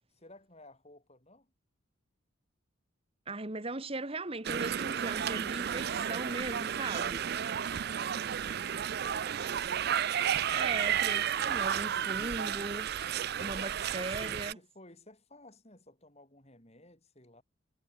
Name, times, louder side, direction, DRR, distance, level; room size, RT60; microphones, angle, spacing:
voice 1, 0.2-1.5 8.1-9.6 13.4-17.4, left 1 dB, 30° left, 6.3 m, -57 dB
voice 2, 3.3-7.3 10.5-12.9 13.4-14.6, right 2 dB, 25° right, 1.4 m, -38 dB
sound 1, 4.4-14.5, right 9 dB, 50° right, 0.4 m, -32 dB
head